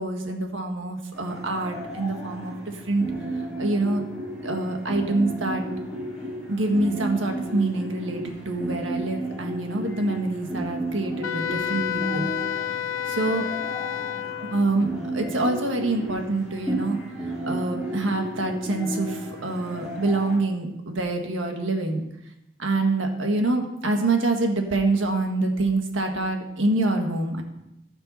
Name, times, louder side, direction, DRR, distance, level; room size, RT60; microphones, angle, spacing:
voice 1, 0.0-2.5 2.9-3.0 3.6-4.0 4.4-5.6 6.5-12.3 13.1-13.5 14.4-17.0 17.4-22.0 22.6-27.4, right 2 dB, 85° right, 4 dB, 1.6 m, -26 dB
sound 1, 1.1-20.4, right 1 dB, 5° right, 4.0 m, -33 dB
Wind instrument woodwind instrument, 11.2-14.7, left 10 dB, 85° left, 0.4 m, -30 dB
14.0 x 5.8 x 5.4 m, 0.87 s
head